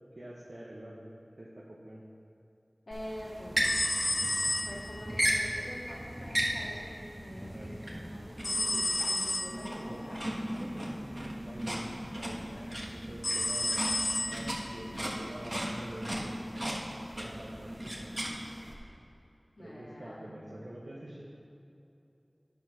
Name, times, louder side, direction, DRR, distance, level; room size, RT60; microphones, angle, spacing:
voice 1, 0.2-1.1 1.4-2.0 5.1-5.2 7.5-7.7 9.8-10.0 10.6-11.1 11.4-12.4 13.1-18.1 19.6-21.2, right 1 dB, 70° right, -6 dB, 1.0 m, -46 dB
voice 2, 2.9-3.6 4.6-7.7 8.1-10.2 11.8-12.8 19.6-20.3, equal, 90° left, -5 dB, 1.8 m, -45 dB
sound 1, 2.9-18.7, equal, 30° right, 1.3 m, -36 dB
sound 2, 3.6-5.2 8.4-9.7 13.2-14.6, left 2 dB, 75° left, 0.5 m, -31 dB
10.5 x 4.8 x 5.7 m, 2.7 s
wide cardioid pair, 40°, 0 cm